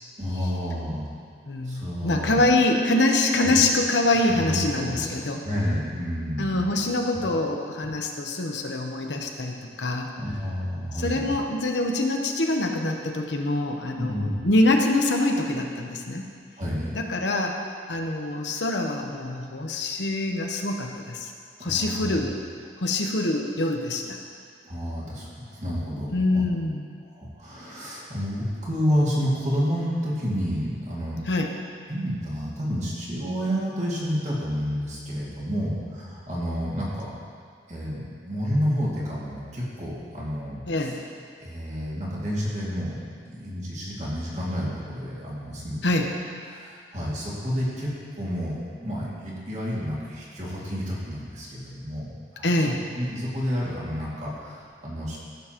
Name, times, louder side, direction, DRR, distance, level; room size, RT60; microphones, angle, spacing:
voice 1, 0.2-1.1 1.6-2.4 3.4-3.5 4.3-5.1 5.4-6.7 10.2-11.3 14.0-14.4 16.6-16.9 21.6-22.2 24.6-26.4 27.1-31.2 31.9-37.1 37.7-41.0 41.4-45.9 46.5-47.9 48.1-52.5 53.0-55.2, equal, 40° right, -6 dB, 2.2 m, -30 dB
voice 2, 1.5-5.4 6.4-10.1 10.9-16.2 16.9-17.6 17.9-21.3 21.6-22.3 22.8-24.2 26.1-26.8 31.3-31.5 40.7-41.0 45.8-46.1 52.4-52.8, left 2 dB, 80° left, 2 dB, 0.9 m, -25 dB
15.0 x 7.1 x 3.0 m, 2.2 s
head